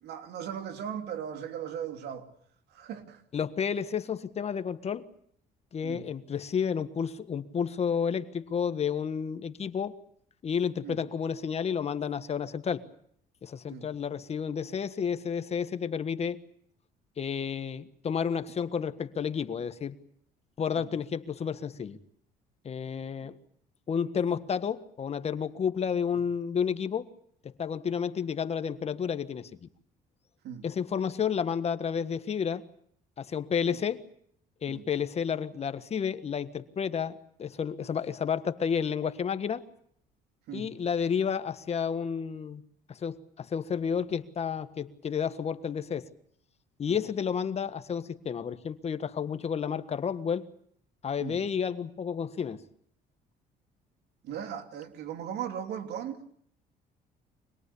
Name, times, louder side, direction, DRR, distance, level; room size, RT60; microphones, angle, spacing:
voice 1, 0.0-2.3 2.7-3.2 5.8-6.1 10.8-11.0 13.7-13.9 20.8-20.9 23.2-23.3 30.4-30.6 33.7-33.8 34.7-34.8 40.5-40.8 46.9-47.0 51.2-51.4 54.2-56.2, right 8 dB, 75° right, 3.1 m, -38 dB
voice 2, 3.3-5.1 5.7-9.9 10.4-12.8 13.4-16.4 17.2-20.0 20.6-22.0 22.6-23.4 23.9-27.1 27.4-29.7 30.6-32.6 33.2-34.0 34.6-39.6 40.5-42.6 42.9-46.1 46.8-50.4 51.0-52.6, left 7 dB, 40° left, 1.6 m, -31 dB
25.5 x 20.5 x 8.5 m
cardioid pair, 110°, 17 cm